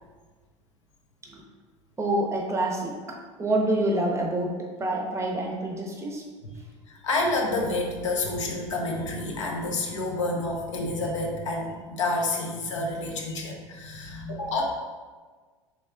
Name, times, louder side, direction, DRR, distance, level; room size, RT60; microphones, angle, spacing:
voice 1, 2.0-6.3, right 1 dB, 15° right, 0 dB, 0.6 m, -27 dB
voice 2, 6.9-14.6, left 2 dB, 70° left, 0 dB, 0.7 m, -29 dB
3.4 x 3.1 x 3.5 m, 1.4 s
figure-of-eight pair, 75°, 16 cm